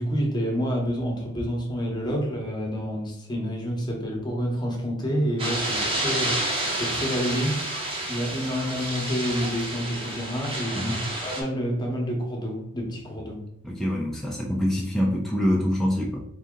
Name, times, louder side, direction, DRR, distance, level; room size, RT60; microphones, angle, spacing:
voice 1, 0.0-7.6 8.1-13.4, equal, 20° left, 0 dB, 0.9 m, -28 dB
sound 1, 5.4-11.4, right 1 dB, 25° right, 0.9 m, -29 dB
voice 2, 13.6-16.2, equal, ahead, -2 dB, 0.4 m, -25 dB
3.7 x 2.7 x 3.7 m, 0.74 s
head